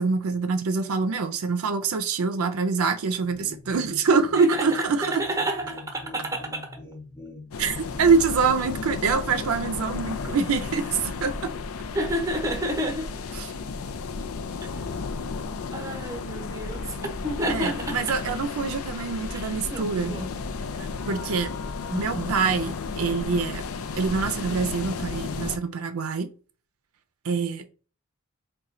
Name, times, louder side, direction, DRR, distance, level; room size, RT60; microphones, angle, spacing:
voice 1, 0.0-5.1 7.6-11.5 13.3-13.5 17.5-20.2 20.8-21.5 21.9-23.7 23.9-26.3 27.2-27.7, right 5 dB, 80° right, 0.5 m, -25 dB
sound 1, 3.2-8.3, left 2 dB, 15° left, 0.6 m, -44 dB
voice 2, 4.3-6.8 11.9-13.1 15.7-18.0 19.3-20.3 21.9-22.4, right 1 dB, 15° right, 0.8 m, -30 dB
sound 2, 7.5-25.6, left 4 dB, 75° left, 0.4 m, -33 dB
4.2 x 2.2 x 3.7 m
head